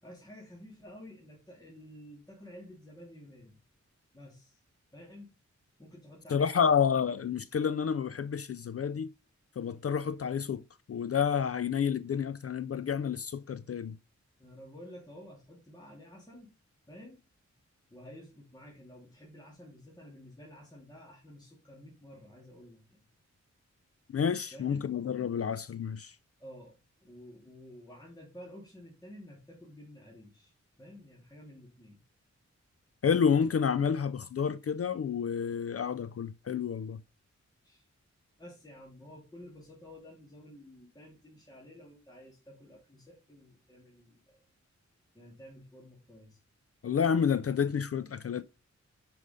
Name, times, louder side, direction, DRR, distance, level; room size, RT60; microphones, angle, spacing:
voice 1, 0.0-3.6 4.1-4.6 4.9-5.3 5.8-6.8 14.4-16.5 16.9-17.2 17.9-23.0 24.5-24.9 26.4-30.5 30.8-32.0 37.6-37.9 38.4-44.4 45.1-46.4, equal, 15° left, 2.6 m, -51 dB
voice 2, 6.3-9.1 9.6-10.6 10.9-14.0 24.1-26.1 33.0-37.0 46.8-48.4, left 7 dB, 55° left, 0.4 m, -29 dB
6.7 x 5.1 x 5.0 m
wide cardioid pair, 75°, 29 cm